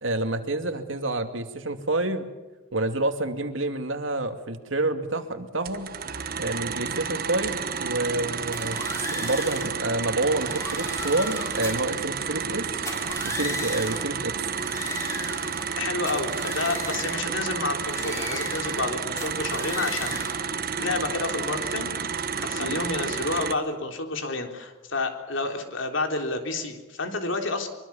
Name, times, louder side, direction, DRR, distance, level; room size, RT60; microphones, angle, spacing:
voice 1, 0.0-2.3 2.7-5.9 6.4-12.7 13.2-14.4 22.6-22.8, right 2 dB, 70° right, 7 dB, 2.5 m, -28 dB
sound 1, 5.6-23.5, right 6 dB, 45° right, 1.4 m, -31 dB
sound 2, 8.5-9.8 10.3-11.9 12.7-14.1 14.5-15.8 16.1-17.3 17.8-18.9 19.2-20.4, left 1 dB, 15° left, 5.4 m, -36 dB
voice 2, 15.8-20.5 20.8-27.7, left 3 dB, 65° left, 4 dB, 3.7 m, -30 dB
24.0 x 24.0 x 7.2 m, 1.2 s
head